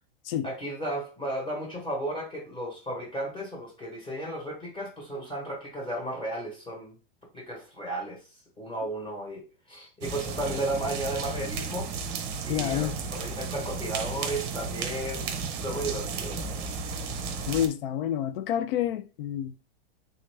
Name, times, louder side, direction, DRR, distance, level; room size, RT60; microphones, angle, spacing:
voice 1, 0.4-7.0 7.3-8.2 8.6-11.9 12.4-15.3 15.6-16.7, right 1 dB, 15° left, 1.1 m, -34 dB
sound 1, 10.0-17.7, right 5 dB, 35° right, 0.6 m, -34 dB
voice 2, 12.5-13.0 17.5-19.5, left 10 dB, 60° left, 0.5 m, -28 dB
3.6 x 2.7 x 3.2 m
supercardioid pair, 145°, 32 cm